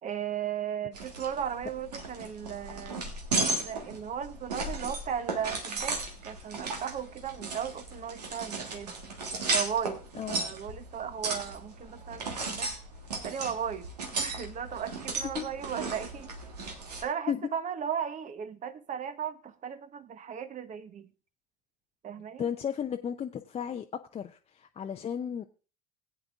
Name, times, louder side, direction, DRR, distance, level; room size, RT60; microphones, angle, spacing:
voice 1, 0.0-3.0 3.5-8.9 9.5-10.0 10.3-12.7 13.2-13.9 14.2-16.3 17.0-21.1 22.0-22.5, right 8 dB, 40° right, 1.0 m, -36 dB
sound 1, 0.9-17.0, right 3 dB, 85° right, 1.6 m, -35 dB
voice 2, 22.4-23.9 24.1-25.4, left 8 dB, 30° left, 0.6 m, -34 dB
19.0 x 8.7 x 2.4 m
hypercardioid pair, 65°, 20 cm